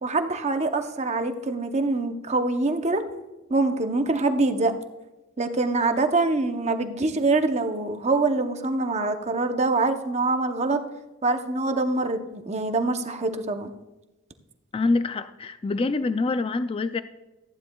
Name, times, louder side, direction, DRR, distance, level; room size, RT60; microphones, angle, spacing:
voice 1, 0.0-3.0 3.5-4.7 5.4-10.8 11.2-13.7, right 3 dB, 30° right, 7 dB, 0.8 m, -24 dB
voice 2, 14.7-17.0, left 3 dB, 25° left, 11 dB, 0.3 m, -25 dB
14.5 x 10.0 x 2.3 m, 1.1 s
head